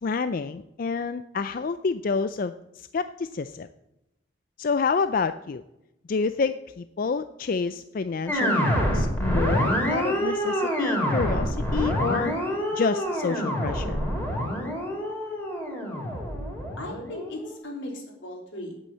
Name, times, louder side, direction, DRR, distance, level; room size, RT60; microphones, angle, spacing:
voice 1, 0.0-3.7 4.6-5.6 6.1-12.4 12.7-14.0, left 5 dB, 45° left, 11 dB, 0.4 m, -28 dB
sound 1, 8.3-17.6, equal, 10° left, 3.3 m, -27 dB
voice 2, 15.8-16.3 16.8-18.8, left 1 dB, 80° left, -1 dB, 3.5 m, -38 dB
8.8 x 8.4 x 7.5 m, 0.92 s
head